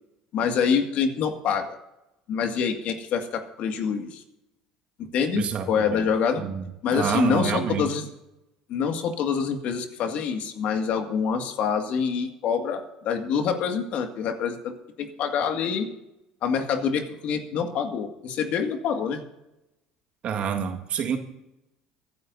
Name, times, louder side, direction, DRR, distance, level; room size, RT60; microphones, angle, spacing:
voice 1, 0.3-1.8 2.3-4.2 5.0-6.4 6.8-8.1 8.7-14.7 15.0-15.9 16.4-19.2, left 6 dB, 60° left, 5 dB, 2.1 m, -26 dB
voice 2, 5.3-5.7 5.9-6.0 6.4-6.6 6.9-7.9 20.2-21.2, right 7 dB, 55° right, 4 dB, 1.8 m, -27 dB
24.0 x 11.0 x 2.7 m, 0.92 s
hypercardioid pair, 75°, 3 cm